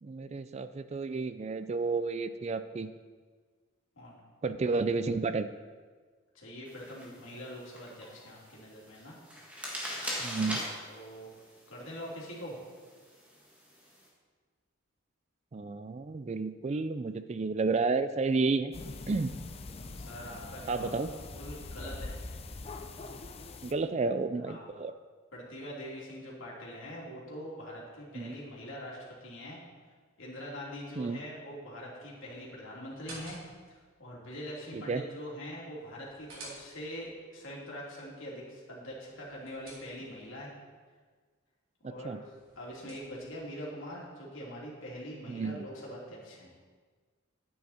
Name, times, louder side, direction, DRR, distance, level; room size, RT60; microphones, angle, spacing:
voice 1, 0.0-2.9 4.4-5.5 10.2-10.6 15.5-18.7 19.1-19.3 20.7-21.2 23.6-24.9 28.1-28.3 31.0-31.2 34.7-35.0 41.8-42.2 45.3-45.7, right 4 dB, 30° right, 11 dB, 0.3 m, -31 dB
voice 2, 6.3-9.2 10.9-11.3 11.7-12.6 19.9-20.9 21.3-22.2 24.4-24.7 25.3-29.6 30.2-33.4 34.0-40.5 41.8-42.2 42.6-46.5, equal, 70° left, -4 dB, 3.1 m, -43 dB
sound 1, 6.7-14.1, equal, 5° right, 1.9 m, -42 dB
sound 2, 18.7-23.7, left 3 dB, 30° left, 0.5 m, -43 dB
sound 3, 32.9-33.8 35.8-37.1 39.0-40.3 42.3-43.4, right 2 dB, 85° right, 3.6 m, -51 dB
10.5 x 9.4 x 4.3 m, 1.5 s
head